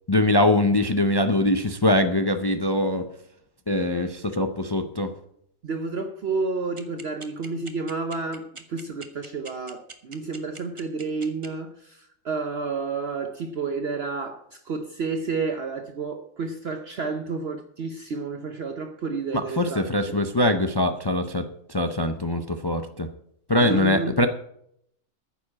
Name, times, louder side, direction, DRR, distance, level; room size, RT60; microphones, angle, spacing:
voice 1, 0.1-3.0 3.7-5.1 19.3-23.1 23.5-24.3, left 1 dB, 35° left, 0.4 m, -23 dB
voice 2, 5.6-20.2 23.6-24.2, right 4 dB, 55° right, 0.9 m, -30 dB
sound 1, 6.8-11.5, right 4 dB, 25° right, 0.9 m, -41 dB
9.5 x 7.1 x 8.5 m
omnidirectional pair, 1.4 m